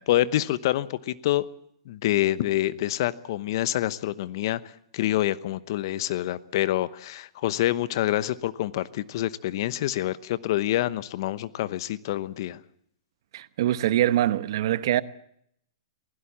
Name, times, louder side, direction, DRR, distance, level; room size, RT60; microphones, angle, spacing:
voice 1, 0.1-1.5 1.8-12.6, left 14 dB, 55° left, 0.9 m, -27 dB
voice 2, 13.3-15.0, right 13 dB, 60° right, 1.0 m, -23 dB
22.5 x 16.5 x 7.3 m
hypercardioid pair, 125°, 3 cm